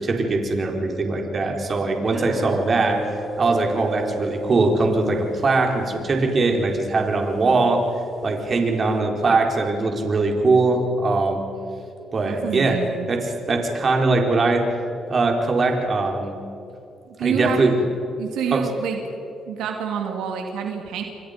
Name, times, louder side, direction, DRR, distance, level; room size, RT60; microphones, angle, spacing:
voice 1, 0.0-3.1 3.4-7.8 8.2-11.4 12.1-12.8 13.1-14.7 15.1-16.4 17.2-17.8 18.5-18.7, right 3 dB, 40° right, 2 dB, 4.3 m, -21 dB
sound 1, 2.1-9.0, right 1 dB, 10° right, 5.3 m, -35 dB
voice 2, 12.2-13.1 17.2-17.7 18.2-19.0 19.5-21.0, right 8 dB, 90° right, 3 dB, 2.7 m, -28 dB
29.0 x 24.5 x 5.3 m, 2.8 s
cardioid pair, 90°, 0 cm